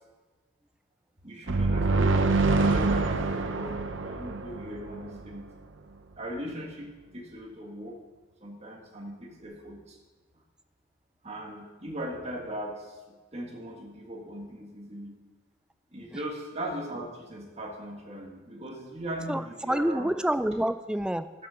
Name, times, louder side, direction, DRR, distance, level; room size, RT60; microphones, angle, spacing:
voice 1, 1.2-5.5 6.2-8.0 8.4-10.0 11.2-15.2 15.9-20.1, right 1 dB, 35° right, 0 dB, 1.7 m, -39 dB
sound 1, 1.5-5.2, right 3 dB, 75° right, 0.7 m, -26 dB
voice 2, 19.3-21.3, right 1 dB, 5° right, 12 dB, 0.3 m, -28 dB
11.5 x 6.2 x 6.5 m, 1.2 s
head